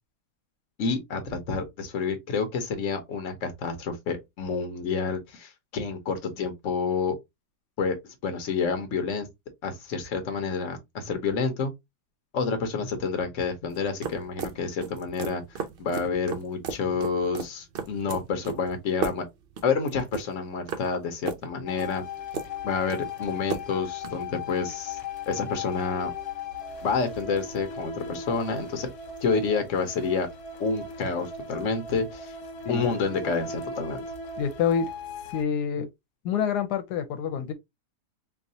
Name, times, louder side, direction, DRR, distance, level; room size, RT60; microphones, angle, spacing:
voice 1, 0.8-7.2 7.8-8.0 8.2-9.3 9.6-11.7 12.3-19.2 19.6-22.0 22.6-25.0 25.3-26.1 26.8-28.9 29.2-30.3 30.6-32.3 32.7-34.0, left 5 dB, 55° left, 1.2 m, -29 dB
sound 1, 13.7-24.2, right 6 dB, 70° right, 0.5 m, -36 dB
sound 2, 21.7-35.4, left 4 dB, 70° left, 1.5 m, -37 dB
voice 2, 34.4-34.9 35.3-35.9 36.2-37.5, left 7 dB, 85° left, 1.2 m, -27 dB
4.5 x 2.3 x 2.7 m
omnidirectional pair, 1.7 m